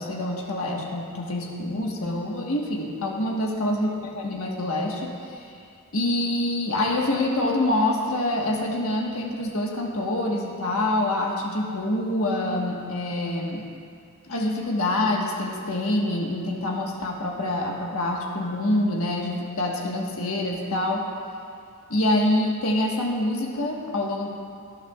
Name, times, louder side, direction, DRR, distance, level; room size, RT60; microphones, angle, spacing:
voice 1, 0.0-5.5 5.9-13.6 14.3-21.0 21.9-24.3, left 1 dB, 80° left, -1 dB, 1.4 m, -26 dB
18.5 x 11.5 x 2.4 m, 2.3 s
head